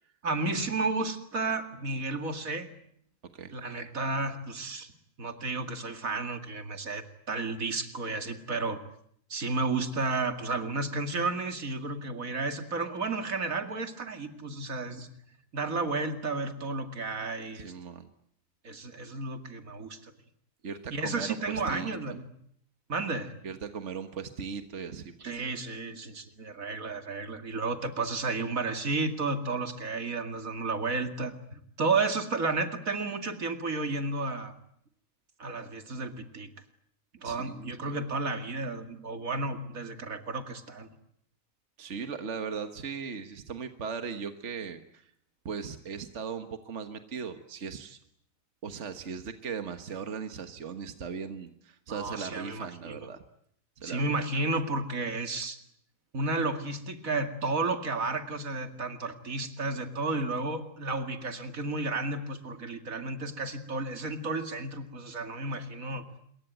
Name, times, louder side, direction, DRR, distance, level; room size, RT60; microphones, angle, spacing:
voice 1, 0.2-2.7 3.5-4.9 5.2-8.8 9.3-15.1 15.5-17.7 18.6-20.1 20.9-22.3 22.9-23.3 25.2-31.3 31.8-34.5 35.4-36.5 37.2-40.9 51.9-53.0 53.8-55.6 56.1-66.0, right 3 dB, 85° right, 7 dB, 2.7 m, -32 dB
voice 2, 17.5-18.1 20.6-22.0 23.4-25.4 37.2-37.7 41.8-45.1 45.5-48.0 48.6-53.2 53.8-54.0, right 6 dB, 60° right, 8 dB, 1.7 m, -38 dB
27.0 x 22.5 x 9.2 m, 0.69 s
omnidirectional pair, 1.4 m